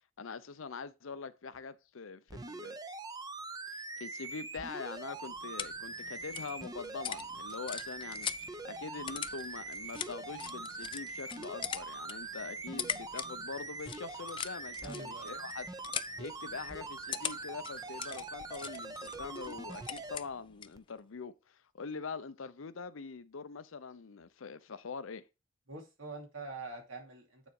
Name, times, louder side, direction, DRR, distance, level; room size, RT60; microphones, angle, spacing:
voice 1, 0.2-2.8 3.7-8.3 8.6-15.7 16.2-25.3, left 5 dB, 80° left, 0.6 m, -44 dB
sound 1, 2.3-20.2 20.8-20.9, right 3 dB, 20° right, 0.6 m, -43 dB
sound 2, 5.0-20.8, left 8 dB, 25° left, 0.3 m, -43 dB
voice 2, 14.8-15.4 25.7-27.5, right 3 dB, 85° right, 2.6 m, -45 dB
9.0 x 4.1 x 4.7 m
head